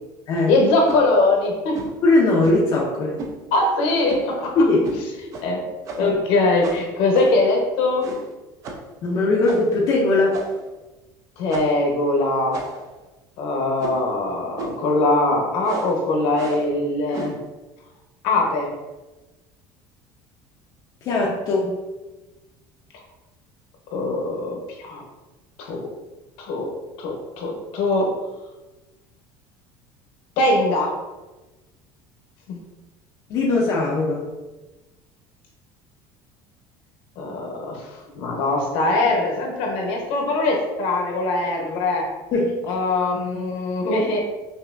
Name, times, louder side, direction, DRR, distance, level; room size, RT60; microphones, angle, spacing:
voice 1, 0.5-1.8 3.5-4.6 5.4-5.6 6.0-8.1 11.4-12.6 13.4-17.3 18.2-18.7 23.9-25.0 25.6-25.9 26.4-26.7 27.0-28.1 30.4-30.9 32.5-32.6 37.2-37.9 38.2-42.1 42.7-44.2, left 2 dB, 65° left, 1 dB, 0.9 m, -21 dB
sound 1, 0.8-1.0 1.7-2.0 2.4-2.7 3.2-3.4 4.1-4.4 4.8-5.0 5.3-5.5 5.8-6.2 6.6-7.5 8.0-8.3 8.6-8.9 9.4-9.8 10.3-10.7 11.5-11.8 12.5-13.0 13.8-14.1 14.6-14.9 15.6-16.0 16.3-16.7 17.1-17.4, right 3 dB, 35° right, 0.5 m, -34 dB
voice 2, 2.0-3.2 4.6-4.8 9.0-10.5 21.0-21.7 33.3-34.2 42.3-42.6, left 2 dB, 40° left, -4 dB, 0.6 m, -19 dB
5.6 x 2.7 x 2.5 m, 1.1 s
cardioid pair, 170°, 10 cm